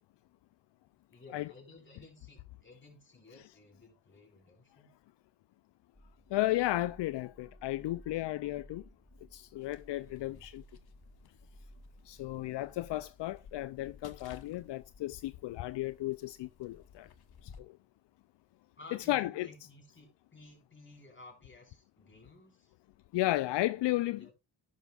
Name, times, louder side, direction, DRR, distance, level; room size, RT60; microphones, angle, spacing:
voice 1, 1.1-4.9 10.0-10.5 12.2-12.5 18.8-22.7 24.2-24.3, left 3 dB, 25° left, 4.5 m, -55 dB
sound 1, 5.9-13.1, equal, 5° left, 2.2 m, -57 dB
voice 2, 6.3-8.8 9.3-10.6 12.0-17.1 17.4-17.8 19.1-19.5 23.1-24.3, left 16 dB, 75° left, 0.5 m, -34 dB
sound 2, 9.6-17.6, left 6 dB, 60° left, 1.2 m, -57 dB
11.0 x 10.5 x 2.4 m
cardioid pair, 85°, 42 cm